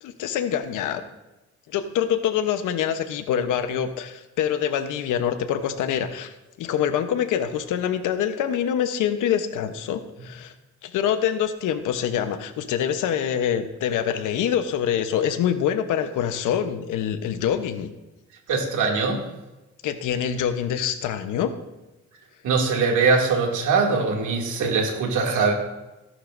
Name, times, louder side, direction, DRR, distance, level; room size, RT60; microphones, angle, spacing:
voice 1, 0.0-1.0 1.7-10.5 10.8-17.9 19.8-21.5, left 9 dB, 90° left, 9 dB, 1.0 m, -25 dB
voice 2, 18.5-19.3 22.4-25.5, right 4 dB, 80° right, 1 dB, 2.6 m, -22 dB
17.0 x 11.0 x 2.7 m, 1.0 s
cardioid pair, 90°, 30 cm